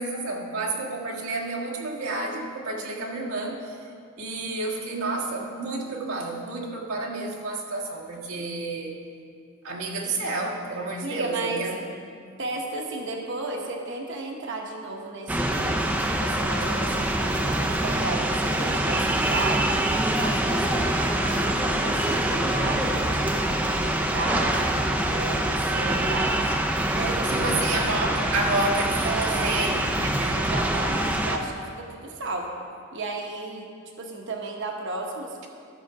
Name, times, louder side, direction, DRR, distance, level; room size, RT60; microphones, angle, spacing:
voice 1, 0.0-3.8 4.2-8.9 9.6-11.8 27.3-30.4, right 2 dB, 90° right, -2 dB, 1.6 m, -30 dB
voice 2, 11.0-11.6 12.4-19.7 20.1-23.5 23.8-26.5 26.9-27.8 29.0-29.5 30.3-32.5 32.9-33.7 34.0-35.5, right 2 dB, 60° right, 1 dB, 1.0 m, -34 dB
sound 1, 15.3-31.4, right 1 dB, 5° right, 0.5 m, -25 dB
13.0 x 6.4 x 4.7 m, 2.3 s
head